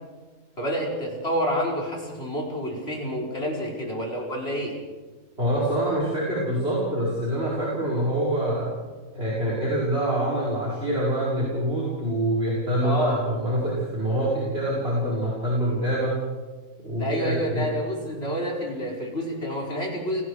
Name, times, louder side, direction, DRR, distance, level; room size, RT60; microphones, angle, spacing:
voice 1, 0.6-4.8 12.8-13.2 17.0-20.2, equal, 40° left, -2 dB, 5.5 m, -28 dB
voice 2, 5.4-8.7 9.1-16.2 16.8-17.7, right 1 dB, 40° right, -6 dB, 5.6 m, -25 dB
29.5 x 20.0 x 5.0 m, 1.3 s
omnidirectional pair, 1.6 m